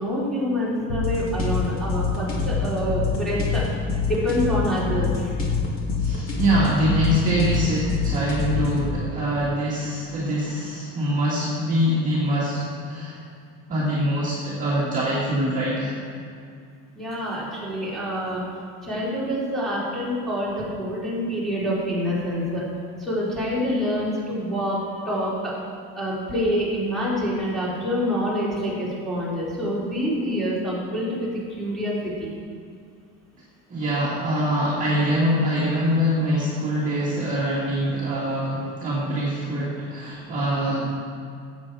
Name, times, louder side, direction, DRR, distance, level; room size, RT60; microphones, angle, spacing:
voice 1, 0.0-3.6 4.0-5.4 16.9-18.4 18.8-22.6 23.0-25.5 25.9-31.3 31.6-32.4, equal, ahead, -8 dB, 3.5 m, -26 dB
sound 1, 0.9-8.9, left 4 dB, 40° left, 2.5 m, -26 dB
voice 2, 6.0-13.2 13.7-16.0 33.7-41.0, equal, 25° right, -7 dB, 1.9 m, -24 dB
15.5 x 8.5 x 4.8 m, 2.3 s
cardioid pair, 170°, 35 cm